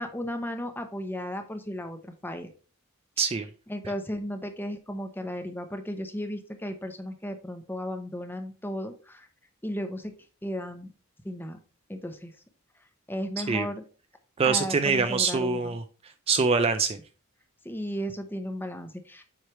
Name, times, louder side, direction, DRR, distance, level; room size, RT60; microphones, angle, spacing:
voice 1, 0.0-2.5 3.7-9.3 9.6-10.1 10.4-10.9 11.2-11.6 11.9-12.3 13.1-13.8 14.4-15.8 17.6-19.2, equal, 10° left, 6 dB, 0.7 m, -35 dB
voice 2, 3.2-3.5 13.4-13.7 14.4-15.8 16.3-17.0, right 4 dB, 25° right, 9 dB, 0.3 m, -24 dB
7.6 x 3.2 x 4.4 m, 0.38 s
head